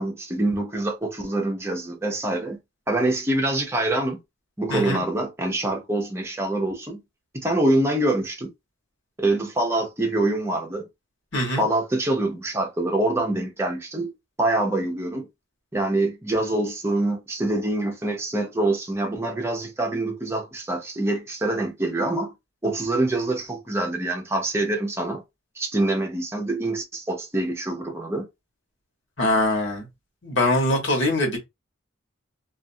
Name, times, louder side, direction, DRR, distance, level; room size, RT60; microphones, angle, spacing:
voice 1, 0.0-2.6 2.9-4.2 4.6-7.0 7.3-8.5 9.2-10.9 11.6-14.1 14.4-15.3 15.7-22.3 22.6-25.2 25.6-28.3, right 2 dB, 15° right, 0.6 m, -25 dB
voice 2, 4.7-5.0 11.3-11.6 29.2-29.8 30.2-31.4, left 1 dB, 60° left, 1.3 m, -22 dB
2.5 x 2.4 x 2.6 m
head